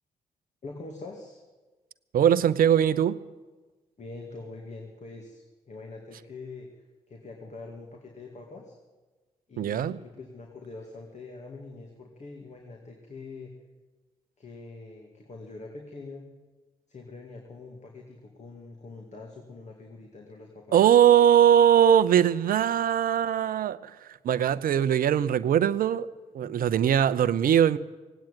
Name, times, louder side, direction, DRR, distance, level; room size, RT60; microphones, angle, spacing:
voice 1, 0.6-1.4 4.0-6.7 7.1-8.8 9.5-13.5 14.4-16.3 16.9-20.8 26.4-26.7, left 3 dB, 45° left, 2.3 m, -44 dB
voice 2, 2.1-3.2 9.6-10.0 20.7-26.1 26.3-27.8, right 9 dB, 65° right, 0.7 m, -21 dB
17.5 x 9.0 x 9.1 m
hypercardioid pair, 40°, 16 cm